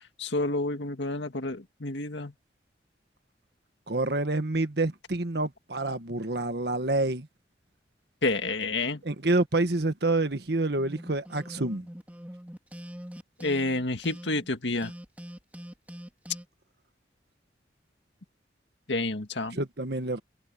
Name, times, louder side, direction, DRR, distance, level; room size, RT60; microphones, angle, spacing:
voice 1, 0.2-2.3 8.2-9.0 13.4-14.9 18.9-19.6, left 2 dB, 80° left, 2.0 m, -29 dB
voice 2, 3.9-7.3 9.0-11.9 19.5-20.2, right 2 dB, 65° right, 1.6 m, -28 dB
sound 1, 10.8-14.5 14.8-16.5, equal, 10° right, 2.5 m, -43 dB
head